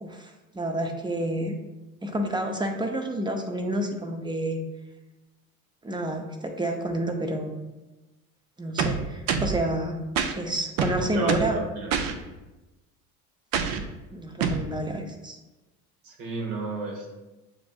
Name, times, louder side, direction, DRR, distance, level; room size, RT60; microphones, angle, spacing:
voice 1, 0.0-1.5 2.0-4.6 5.8-7.6 8.6-10.0 10.4-11.6 14.1-15.4, right 1 dB, 10° right, 4 dB, 0.6 m, -29 dB
sound 1, 8.8-9.6 10.2-10.3 10.8-11.6 11.9-12.1 13.5-13.9 14.4-14.7, right 6 dB, 55° right, 0.6 m, -26 dB
voice 2, 11.0-12.0 16.0-17.1, right 3 dB, 75° right, 0 dB, 1.2 m, -33 dB
7.4 x 2.5 x 2.3 m, 1.1 s
hypercardioid pair, 75°, 43 cm